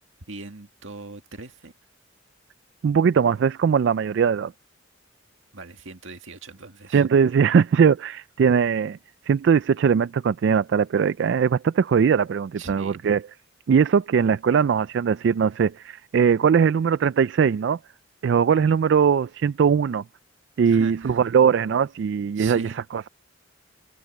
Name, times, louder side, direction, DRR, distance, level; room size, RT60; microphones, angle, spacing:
voice 1, 0.3-1.7 5.5-7.0 12.5-13.0 20.7-21.2 22.4-22.8, right 3 dB, 75° right, 2.0 m, -40 dB
voice 2, 2.8-4.5 6.9-9.0 9.3-13.2 13.7-17.8 18.2-20.0 20.6-23.1, right 6 dB, 60° right, 0.3 m, -20 dB
head